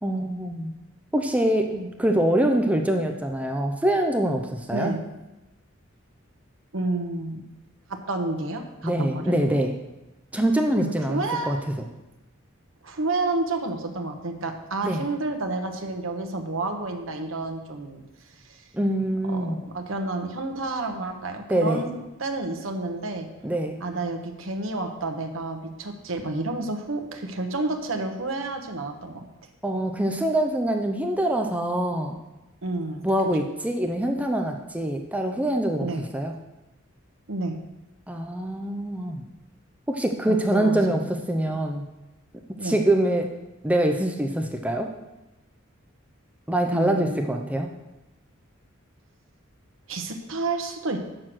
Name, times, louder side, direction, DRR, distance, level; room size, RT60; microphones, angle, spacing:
voice 1, 0.0-0.7 1.1-4.9 8.8-9.7 10.3-11.6 14.8-15.0 18.7-19.6 21.5-21.9 23.4-23.8 29.6-32.2 33.0-35.9 36.1-36.3 38.1-39.2 39.9-41.8 42.6-43.3 43.6-44.9 46.5-47.7, right 1 dB, 5° right, 3 dB, 0.5 m, -24 dB
voice 2, 6.7-7.4 7.9-9.3 10.7-11.6 12.8-18.6 19.3-23.3 23.8-29.3 32.6-33.1 35.8-36.1 37.3-37.6 40.3-41.2 41.5-41.6 42.6-42.8 46.7-47.5 49.9-51.0, right 2 dB, 70° right, 4 dB, 1.1 m, -30 dB
7.7 x 6.5 x 6.1 m, 1.0 s
head